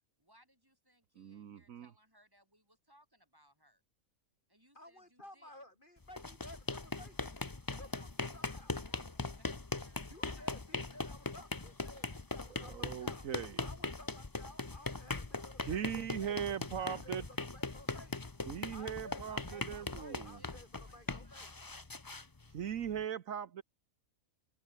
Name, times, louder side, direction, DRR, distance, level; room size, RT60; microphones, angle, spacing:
voice 1, 0.2-3.8 4.5-5.5 8.5-10.9 19.3-21.6, equal, 15° right, 7.4 m, -67 dB
voice 2, 1.2-1.9 12.6-13.7 15.7-17.3 18.5-20.4 22.5-23.6, right 9 dB, 70° right, 1.4 m, -39 dB
voice 3, 4.7-7.3 7.8-8.7 10.1-13.3 13.6-16.4 16.8-18.2 18.7-21.5, left 1 dB, 35° left, 3.4 m, -55 dB
sound 1, 6.0-23.0, left 3 dB, 20° left, 0.8 m, -41 dB
omnidirectional pair, 1.5 m